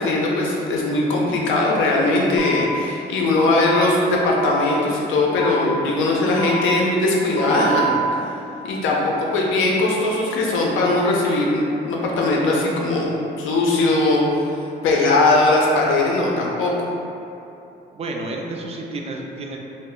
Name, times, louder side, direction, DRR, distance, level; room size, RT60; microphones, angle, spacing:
voice 1, 0.0-8.0 8.6-13.1 13.4-14.2 14.8-16.7, left 2 dB, 85° left, -3 dB, 0.5 m, -19 dB
The Pips, 2.4-2.5 3.4-3.5 4.4-4.5 5.4-5.5 6.4-6.5 7.4-7.9, right 6 dB, 40° left, 0.7 m, -27 dB
voice 2, 17.9-19.6, right 2 dB, 30° right, 0 dB, 0.3 m, -30 dB
2.1 x 2.0 x 3.6 m, 2.8 s
cardioid pair, 90°, 20 cm